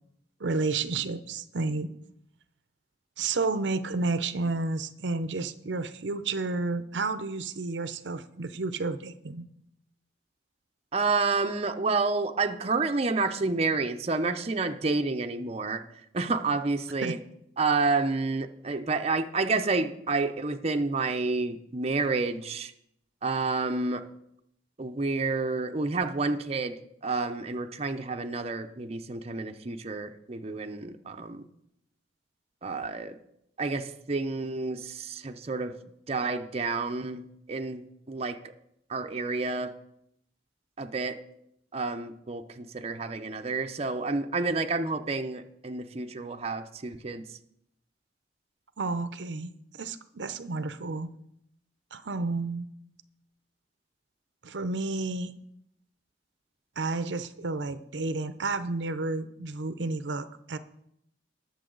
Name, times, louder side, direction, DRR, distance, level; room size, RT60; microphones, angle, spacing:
voice 1, 0.4-1.9 3.2-9.5 17.0-17.2 48.8-51.1 51.9-52.7 54.4-55.4 56.8-60.6, right 3 dB, 75° right, 12 dB, 0.6 m, -31 dB
voice 2, 10.9-15.8 16.1-17.2 17.6-22.7 23.2-24.1 24.8-31.4 32.6-33.2 33.6-35.7 36.1-38.5 38.9-39.7 40.8-41.2 41.7-47.3, right 3 dB, 35° right, 6 dB, 0.6 m, -29 dB
20.0 x 6.9 x 3.9 m, 0.76 s
head